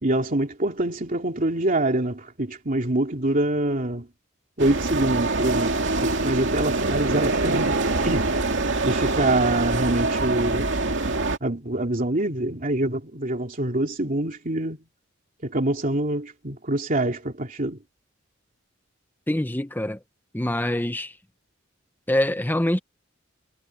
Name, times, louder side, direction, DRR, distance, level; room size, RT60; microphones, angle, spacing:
voice 1, 0.0-4.1 4.6-7.8 8.0-8.3 8.8-10.7 11.4-14.8 15.4-17.8, right 1 dB, 45° right, 3.0 m, -25 dB
sound 1, 4.6-11.4, right 3 dB, 65° right, 2.6 m, -24 dB
voice 2, 19.3-20.0 20.3-21.1 22.1-22.8, left 1 dB, 10° left, 0.9 m, -24 dB
head